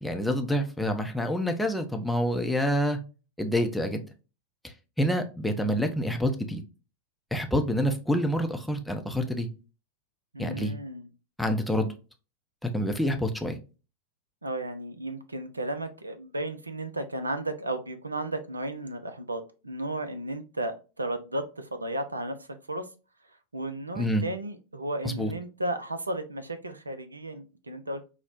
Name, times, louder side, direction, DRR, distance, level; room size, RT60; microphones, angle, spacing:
voice 1, 0.0-3.0 3.4-4.0 5.0-6.6 7.3-9.5 10.4-10.7 11.4-11.9 12.6-13.6 23.9-24.2 25.0-25.3, equal, 5° left, 4 dB, 0.5 m, -27 dB
voice 2, 10.3-11.1 14.4-22.9 23.5-28.1, right 1 dB, 80° right, 9 dB, 0.4 m, -34 dB
4.8 x 2.0 x 2.5 m, 0.32 s
figure-of-eight pair, 90°, 0 cm